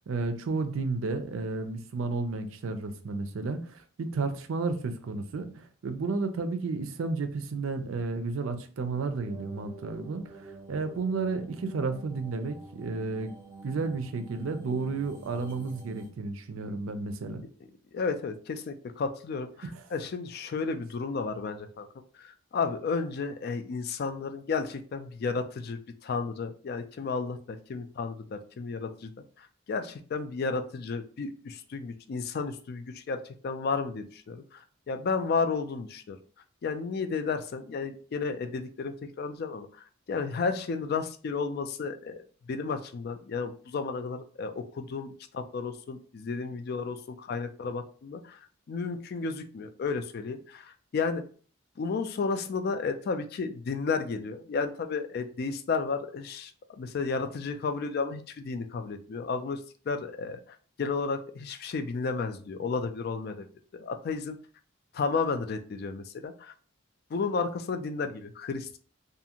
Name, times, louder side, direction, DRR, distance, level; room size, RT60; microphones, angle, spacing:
voice 1, 0.1-10.2 10.7-13.3 13.6-17.4 19.6-19.7, right 3 dB, 75° right, 0.4 m, -32 dB
sound 1, 8.9-16.1, right 3 dB, 10° right, 0.8 m, -48 dB
voice 2, 17.9-21.9 22.2-29.1 29.4-36.2 36.6-39.7 40.1-48.4 48.7-51.2 51.8-59.6 59.9-60.4 60.8-63.5 63.7-64.4 64.9-66.5 67.1-68.8, left 4 dB, 50° left, 0.3 m, -32 dB
2.6 x 2.4 x 2.8 m
head